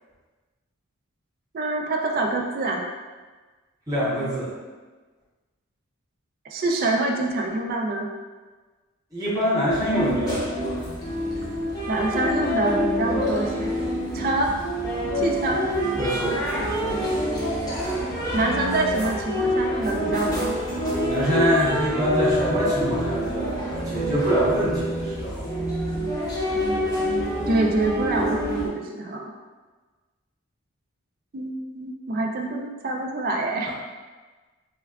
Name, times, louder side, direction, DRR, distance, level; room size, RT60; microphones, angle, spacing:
voice 1, 1.5-2.8 6.5-8.1 11.9-13.5 14.1-14.5 15.2-15.6 18.3-20.6 27.5-29.3 31.3-33.7, right 2 dB, 40° right, 1 dB, 0.3 m, -25 dB
voice 2, 3.9-4.5 9.1-10.8 16.0-16.4 21.0-25.5, equal, 15° right, -9 dB, 0.8 m, -25 dB
sound 1, 9.7-28.7, equal, 15° left, 0.6 m, -27 dB
4.4 x 2.2 x 2.2 m, 1.3 s
head